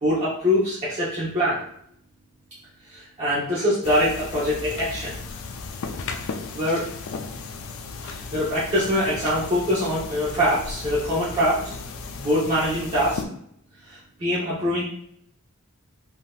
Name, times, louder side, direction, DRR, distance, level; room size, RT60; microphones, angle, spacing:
voice 1, 0.0-1.6 2.9-5.2 6.5-6.9 8.0-11.7 12.1-13.2 13.9-14.8, equal, 30° right, -10 dB, 0.7 m, -24 dB
sound 1, 3.8-13.3, left 4 dB, 65° left, 0.4 m, -35 dB
3.5 x 2.7 x 2.3 m, 0.69 s
head